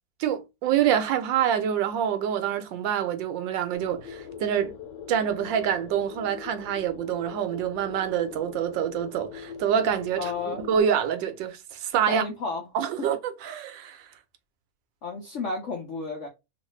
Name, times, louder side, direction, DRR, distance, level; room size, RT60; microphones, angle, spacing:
voice 1, 0.2-4.7 5.1-12.2 12.7-14.1, right 9 dB, 80° right, 1.3 m, -26 dB
sound 1, 3.7-10.8, left 7 dB, 70° left, 1.4 m, -42 dB
voice 2, 10.2-10.6 12.1-12.7 13.0-13.1 15.0-16.3, left 4 dB, 55° left, 0.8 m, -32 dB
3.1 x 2.5 x 3.0 m
omnidirectional pair, 2.0 m